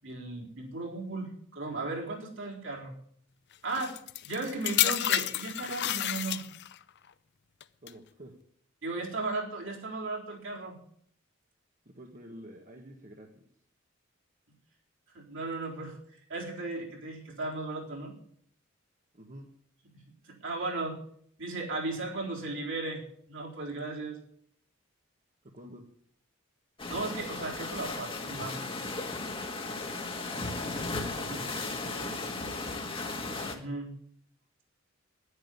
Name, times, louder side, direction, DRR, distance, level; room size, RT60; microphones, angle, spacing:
voice 1, 0.0-2.9 3.6-4.0 4.2-6.4 8.8-10.8 15.1-16.0 16.3-18.2 19.9-21.0 21.4-24.2 26.9-28.7 31.2-31.5 33.5-33.9, right 3 dB, 65° right, -1 dB, 4.1 m, -36 dB
sound 1, 3.7-6.8 7.6-7.9, left 13 dB, 55° left, 0.6 m, -30 dB
voice 2, 7.8-8.3 12.0-13.4 19.1-19.5 25.4-25.9 30.0-30.3 31.1-32.8, equal, 40° right, 1 dB, 1.7 m, -49 dB
sound 2, 26.8-33.5, left 3 dB, 25° left, 1.8 m, -36 dB
10.5 x 9.8 x 9.8 m, 0.64 s
head